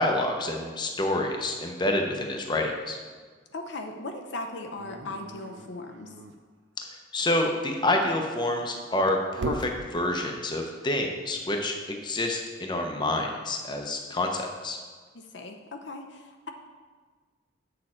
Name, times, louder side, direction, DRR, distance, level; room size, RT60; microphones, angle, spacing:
voice 1, 0.0-3.0 7.1-14.8, left 1 dB, 20° left, 2 dB, 0.8 m, -28 dB
voice 2, 3.5-6.1 15.1-16.5, left 2 dB, 60° left, 4 dB, 0.7 m, -38 dB
Dog, 4.8-6.4 7.9-9.7, right 2 dB, 65° right, 0.6 m, -38 dB
8.4 x 6.5 x 4.4 m, 1.5 s
head